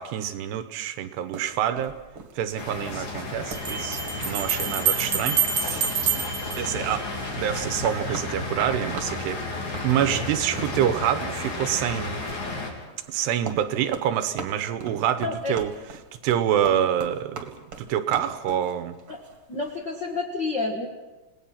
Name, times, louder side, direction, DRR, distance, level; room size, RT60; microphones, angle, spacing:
voice 1, 0.0-2.0 2.4-5.9 6.5-7.1 7.4-9.4 9.8-12.2 13.1-15.7 16.2-17.5 17.8-19.0, right 10 dB, 75° right, 10 dB, 2.8 m, -26 dB
sound 1, 1.3-19.8, right 4 dB, 40° right, 2.3 m, -41 dB
Bell, 1.9-2.0 3.5-7.4, right 7 dB, 60° right, 1.3 m, -27 dB
sound 2, 2.6-12.7, left 3 dB, 45° left, 4.6 m, -33 dB
voice 2, 15.2-15.5 19.5-20.9, left 3 dB, 75° left, 0 dB, 1.0 m, -29 dB
29.0 x 19.0 x 5.7 m, 1.1 s
omnidirectional pair, 5.1 m